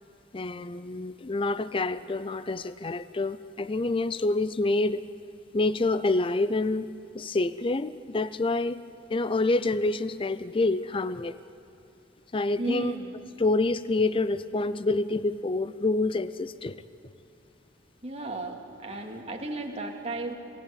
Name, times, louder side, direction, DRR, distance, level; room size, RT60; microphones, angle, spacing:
voice 1, 0.3-5.0 5.5-8.8 9.1-11.4 12.3-13.0 13.4-16.8, left 2 dB, 30° left, 15 dB, 0.5 m, -27 dB
voice 2, 12.6-13.1 18.0-20.3, right 2 dB, 35° right, 2 dB, 2.3 m, -34 dB
27.5 x 16.5 x 8.5 m, 2.8 s
head